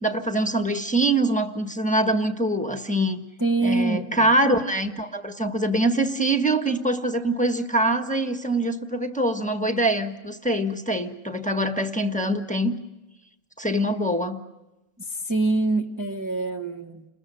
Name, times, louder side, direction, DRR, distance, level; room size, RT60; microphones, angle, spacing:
voice 1, 0.0-3.2 3.6-12.8 13.6-14.4, right 1 dB, 5° left, 5 dB, 1.3 m, -24 dB
voice 2, 3.4-4.3 15.1-17.1, right 2 dB, 15° right, 1 dB, 1.1 m, -25 dB
29.5 x 21.0 x 7.8 m, 1.0 s
omnidirectional pair, 1.5 m